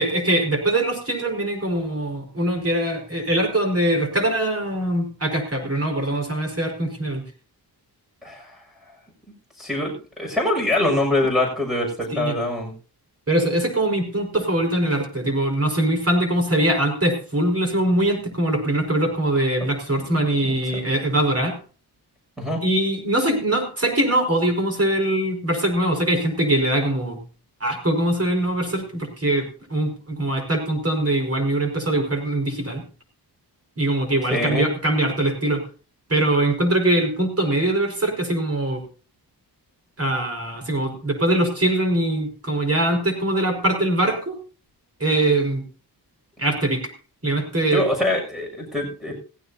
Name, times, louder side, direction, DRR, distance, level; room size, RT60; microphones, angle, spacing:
voice 1, 0.0-7.2 12.1-12.3 13.3-21.6 22.6-27.2 27.6-32.8 33.8-35.6 36.1-38.8 40.0-44.4 45.0-45.6 46.4-46.8 47.2-47.8, right 1 dB, 35° right, 4 dB, 5.3 m, -22 dB
voice 2, 8.2-8.6 9.6-12.7 20.0-20.6 22.4-22.6 34.3-34.7 47.7-49.2, left 1 dB, ahead, -2 dB, 6.9 m, -24 dB
17.0 x 16.0 x 2.9 m, 0.37 s
cardioid pair, 75°, 40 cm